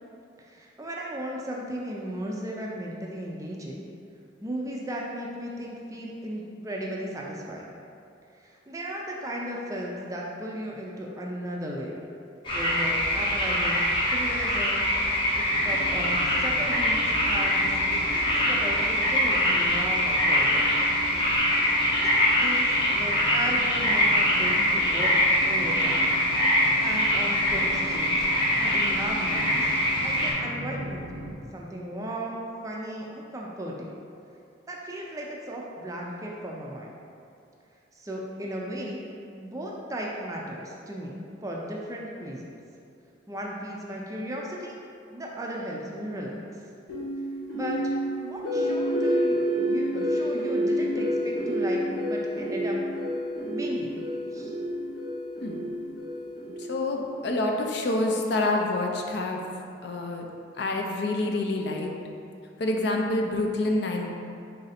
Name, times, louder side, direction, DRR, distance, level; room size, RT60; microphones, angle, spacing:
voice 1, 0.4-3.9 4.4-7.8 8.4-12.0 12.5-13.8 14.1-14.9 15.4-20.7 21.9-25.1 25.4-26.1 26.8-28.2 28.6-29.7 30.0-31.0 31.5-33.9 34.7-36.9 37.9-39.0 39.3-42.5 43.3-44.8 45.1-46.4 47.5-47.9 48.2-52.8 53.5-54.0 54.3-54.5, equal, 15° right, -2 dB, 0.3 m, -36 dB
sound 1, 12.4-30.3, left 1 dB, 25° left, 0.7 m, -24 dB
sound 2, 15.5-31.3, right 2 dB, 80° right, 0.5 m, -40 dB
sound 3, 46.9-57.0, equal, 80° left, 1.2 m, -28 dB
voice 2, 56.7-59.4 59.8-60.3 60.6-61.9 62.6-64.1, left 2 dB, 55° left, 1 dB, 0.4 m, -27 dB
4.0 x 2.6 x 4.0 m, 2.5 s
head